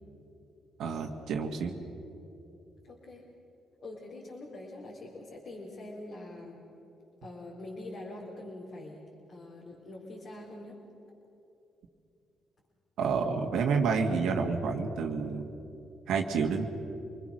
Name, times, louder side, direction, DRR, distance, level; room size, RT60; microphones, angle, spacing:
voice 1, 0.8-1.8 13.0-15.5 16.1-16.7, right 5 dB, 80° right, 3 dB, 1.7 m, -29 dB
voice 2, 2.8-3.2 3.8-6.6 7.2-10.8, left 2 dB, 60° left, -4 dB, 4.0 m, -44 dB
27.5 x 20.5 x 6.4 m, 2.8 s
cardioid pair, 90°, 0 cm